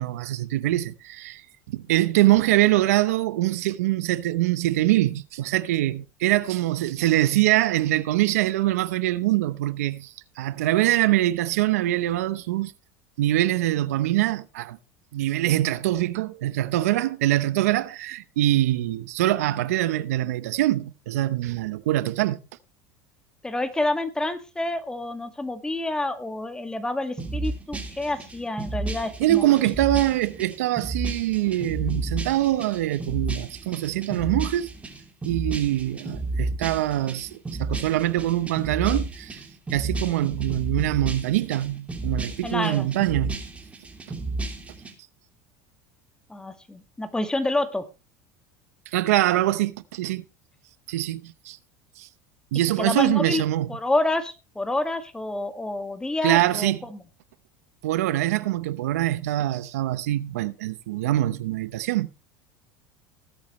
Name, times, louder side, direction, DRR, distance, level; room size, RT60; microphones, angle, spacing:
voice 1, 0.0-12.7 13.2-14.8 15.1-22.4 29.2-34.7 35.3-39.5 39.7-43.4 48.9-50.2 50.9-51.6 52.0-52.1 52.5-53.7 56.2-56.8 57.8-62.1, right 15 dB, 85° right, 0.8 m, -24 dB
voice 2, 23.4-29.5 42.4-42.9 46.3-47.8 52.8-53.4 53.7-57.0, left 2 dB, 10° left, 1.9 m, -28 dB
sound 1, 27.2-44.9, right 2 dB, 15° right, 3.1 m, -32 dB
19.0 x 8.5 x 3.1 m
supercardioid pair, 105°, 8 cm